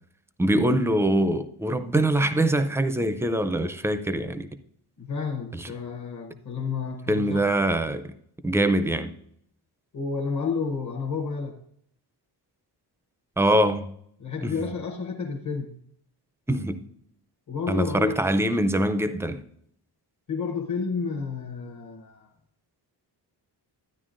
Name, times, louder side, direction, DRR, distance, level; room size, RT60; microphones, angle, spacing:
voice 1, 0.4-4.5 5.5-5.7 7.1-8.1 8.4-9.1 13.4-13.9 14.4-14.6 16.5-16.8 17.7-19.4, right 1 dB, 5° right, 0.4 m, -23 dB
voice 2, 5.0-7.5 9.9-11.6 14.2-15.8 17.5-18.2 20.3-22.3, left 5 dB, 45° left, 0.9 m, -31 dB
12.5 x 9.8 x 2.5 m
wide cardioid pair, 155°, 41 cm